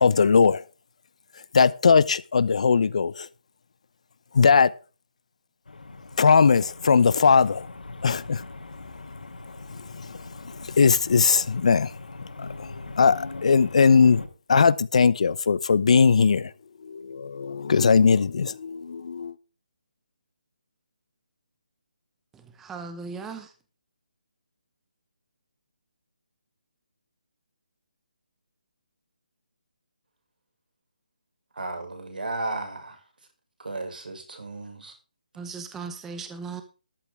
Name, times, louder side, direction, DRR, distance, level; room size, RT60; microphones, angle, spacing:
voice 1, 0.0-0.6 1.5-3.3 4.3-4.7 6.2-7.7 8.0-8.4 10.8-11.9 12.4-12.5 13.0-14.2 14.5-16.5 16.8-19.3, left 5 dB, 50° left, 0.8 m, -19 dB
sound 1, 5.7-14.3, left 3 dB, 85° left, 4.5 m, -40 dB
voice 2, 22.6-23.5 35.4-36.6, right 5 dB, 5° right, 0.8 m, -37 dB
voice 3, 31.6-33.0 33.6-34.9, right 2 dB, 80° right, 6.1 m, -34 dB
13.5 x 12.0 x 3.6 m
hypercardioid pair, 170°, 5 cm